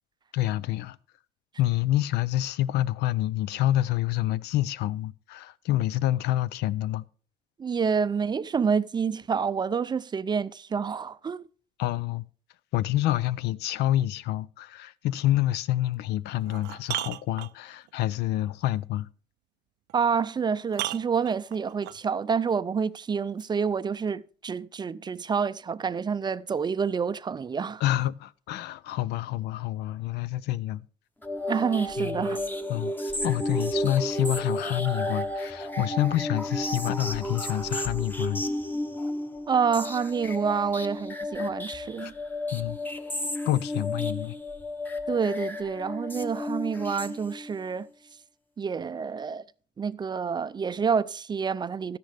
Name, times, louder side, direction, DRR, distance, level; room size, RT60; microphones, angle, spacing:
voice 1, 0.3-1.0 1.6-7.0 11.8-12.2 12.7-19.1 27.8-30.9 32.0-32.2 32.7-38.5 42.0-42.1 42.5-42.8 43.4-44.4, left 14 dB, 80° left, 0.5 m, -27 dB
voice 2, 7.6-11.5 19.9-27.8 31.5-32.4 39.5-42.1 45.1-47.9 48.6-49.4 49.8-52.0, right 6 dB, 25° right, 0.4 m, -28 dB
sound 1, 15.8-15.9 16.4-17.9 19.9-20.0 20.7-22.0 23.4-23.5, right 18 dB, 85° right, 0.4 m, -35 dB
sound 2, 31.2-47.6, left 1 dB, 10° left, 1.0 m, -32 dB
13.0 x 10.0 x 3.4 m
cardioid pair, 110°, 17 cm